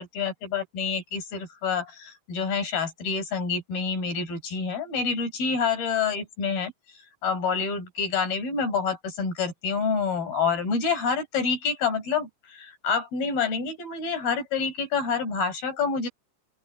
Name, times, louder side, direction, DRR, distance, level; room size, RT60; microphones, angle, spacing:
voice 1, 0.0-16.1, left 5 dB, 45° left, 7.0 m, -28 dB
open air
omnidirectional pair, 6.0 m